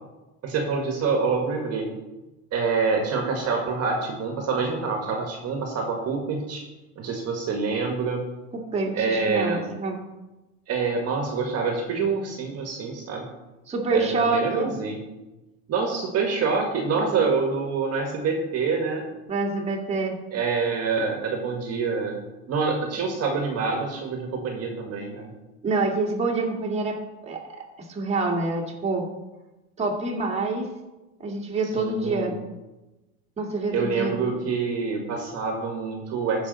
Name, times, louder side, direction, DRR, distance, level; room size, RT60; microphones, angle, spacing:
voice 1, 0.4-1.9 2.5-6.6 6.9-8.3 8.9-9.6 10.7-13.3 13.9-15.0 15.7-19.0 20.3-22.2 22.5-25.3 31.7-32.3 33.7-36.5, right 4 dB, 35° right, 2 dB, 1.6 m, -26 dB
voice 2, 8.5-10.0 13.7-14.7 19.3-20.2 25.6-27.0 27.2-27.4 27.8-29.1 29.8-30.7 31.2-32.3 33.4-34.2, right 3 dB, 15° right, -1 dB, 1.8 m, -26 dB
15.0 x 5.6 x 4.1 m, 1.1 s
supercardioid pair, 130°, 45 cm